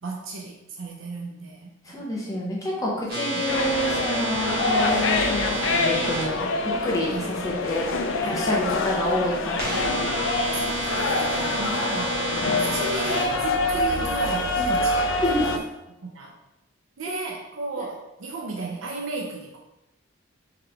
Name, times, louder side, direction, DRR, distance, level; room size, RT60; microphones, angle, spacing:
voice 1, 0.0-2.1 3.3-3.4 6.4-6.5 7.1-7.4 8.2-8.4 10.5-12.2 12.6-15.0 16.0-16.3 17.0-19.6, right 3 dB, 70° right, -1 dB, 0.5 m, -34 dB
voice 2, 1.8-6.4 6.6-7.9 8.3-9.8 15.2-15.5, left 1 dB, 15° left, -4 dB, 0.8 m, -27 dB
sound 1, 3.1-6.2 9.6-13.2, right 2 dB, 45° right, 1.1 m, -29 dB
sound 2, 3.5-15.6, left 2 dB, 65° left, 0.4 m, -26 dB
3.8 x 3.1 x 3.4 m, 0.96 s
head